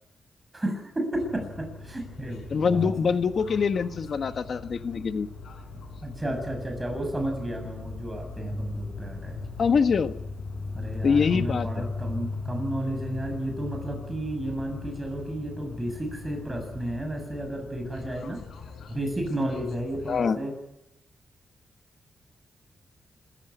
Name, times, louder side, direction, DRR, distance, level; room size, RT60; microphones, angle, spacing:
voice 1, 0.5-3.0 6.0-9.4 10.7-18.4 18.9-20.5, right 1 dB, 15° right, 4 dB, 7.2 m, -32 dB
sound 1, 1.1-20.3, left 4 dB, 85° left, 5.4 m, -39 dB
voice 2, 2.5-5.3 9.6-10.1 11.0-11.9 20.1-20.4, left 5 dB, 55° left, 9 dB, 1.5 m, -24 dB
26.5 x 15.0 x 8.1 m, 0.93 s
wide cardioid pair, 120°, 0 cm